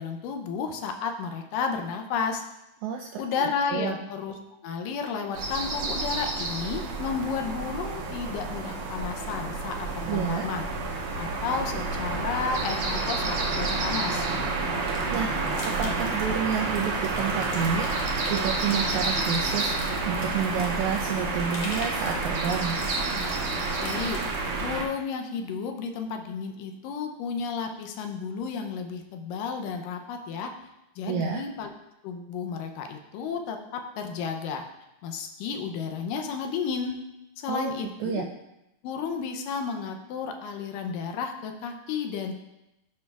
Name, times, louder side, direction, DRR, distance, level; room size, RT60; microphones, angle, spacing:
voice 1, 0.0-2.4 3.2-4.4 4.6-10.7 11.2-14.3 23.8-24.2 24.6-30.5 31.0-31.7 32.0-34.6 35.0-37.0 37.4-38.2 38.8-42.3, left 5 dB, 85° left, 4 dB, 2.3 m, -32 dB
voice 2, 2.8-3.2 3.7-4.0 10.1-10.5 15.1-15.5 15.8-22.8 31.1-31.4 37.5-37.7 38.0-38.2, right 7 dB, 80° right, 2 dB, 1.7 m, -29 dB
sound 1, 5.3-24.8, right 3 dB, 60° right, 1.5 m, -29 dB
sound 2, 10.2-22.2 22.4-22.5, left 2 dB, 50° left, 2.8 m, -48 dB
sound 3, 14.7-24.7, left 3 dB, 65° left, 1.9 m, -44 dB
12.5 x 5.3 x 2.3 m, 0.92 s
omnidirectional pair, 3.8 m